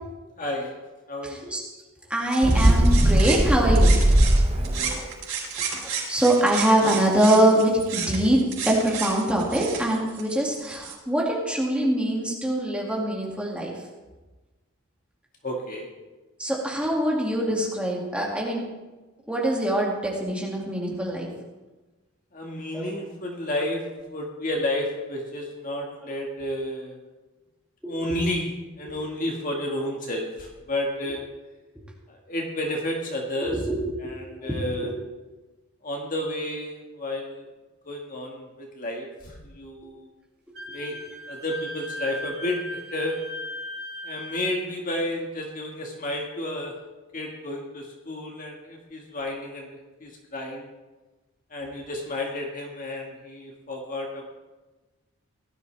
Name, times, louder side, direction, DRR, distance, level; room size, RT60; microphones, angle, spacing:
voice 1, 0.4-0.8 1.1-1.5 2.4-2.6 3.2-3.4 4.5-5.0 15.4-15.9 22.3-27.0 27.8-31.2 32.1-33.6 34.0-34.9 35.8-37.5 37.9-40.1 40.7-40.9 41.3-43.2 44.0-46.7 47.1-50.7 51.5-54.3, left 1 dB, 40° left, 0 dB, 1.8 m, -31 dB
voice 2, 1.2-1.6 2.1-4.0 5.0-5.1 5.6-8.4 8.6-13.7 16.4-18.6 19.3-21.3 22.7-22.9 27.8-28.2 33.5-33.6 34.0-34.1 34.4-34.9, right 1 dB, 5° right, -3 dB, 2.2 m, -24 dB
sound 1, 2.3-4.4 4.6-10.9, right 6 dB, 75° right, 4.4 m, -33 dB
Bird, 2.4-4.9, right 1 dB, 30° right, 0.9 m, -18 dB
Wind instrument woodwind instrument, 40.6-44.5, left 1 dB, 45° right, 2.3 m, -37 dB
17.5 x 12.0 x 3.4 m, 1.2 s
head